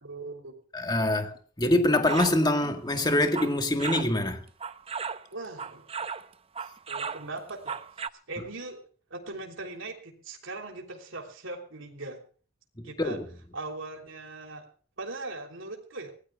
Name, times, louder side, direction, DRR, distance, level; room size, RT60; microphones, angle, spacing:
voice 1, 0.0-0.5 5.3-6.1 6.9-7.8 8.3-8.8 9.1-12.2 12.8-13.2 13.5-14.6 15.0-16.1, right 2 dB, 75° right, 3.3 m, -39 dB
voice 2, 0.7-4.4 12.8-13.2, left 1 dB, 20° left, 1.8 m, -25 dB
sound 1, 2.1-2.4 3.1-4.2 4.6-6.3 6.6-8.1, right 5 dB, 30° right, 0.6 m, -35 dB
24.0 x 17.5 x 2.4 m
head